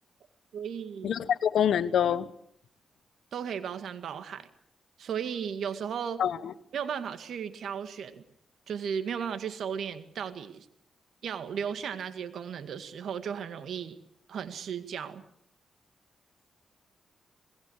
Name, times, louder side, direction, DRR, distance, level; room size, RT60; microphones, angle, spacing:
voice 1, 0.5-1.2 3.3-4.5 5.0-6.3 6.7-8.2 8.7-10.7 11.2-14.0 14.3-15.2, right 7 dB, 75° right, 10 dB, 1.9 m, -35 dB
voice 2, 1.0-2.3 6.2-6.5, left 9 dB, 80° left, 16 dB, 1.1 m, -26 dB
27.0 x 20.5 x 6.5 m, 0.71 s
supercardioid pair, 50°, 0 cm